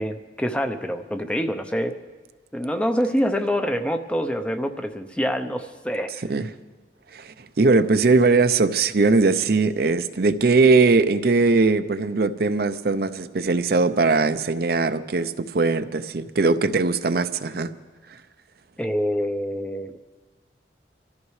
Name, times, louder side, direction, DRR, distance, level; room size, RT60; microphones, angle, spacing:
voice 1, 0.0-2.0 2.5-6.1 18.8-19.9, equal, 5° left, 7 dB, 0.6 m, -26 dB
voice 2, 7.1-17.7, right 3 dB, 55° right, 10 dB, 0.6 m, -20 dB
25.5 x 14.0 x 3.2 m, 1.3 s
head